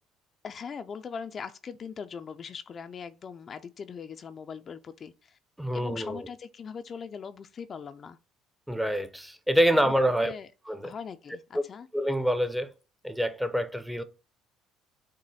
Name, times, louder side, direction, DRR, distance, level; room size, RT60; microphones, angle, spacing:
voice 1, 0.4-5.4 5.7-8.2 9.8-9.9 10.2-10.5 10.8-11.9, left 6 dB, 45° left, 0.4 m, -40 dB
voice 2, 5.6-6.3 8.7-10.3 10.7-10.9 11.9-12.7 13.0-14.0, equal, 5° right, 0.6 m, -26 dB
6.1 x 2.1 x 4.0 m
supercardioid pair, 75°, 0 cm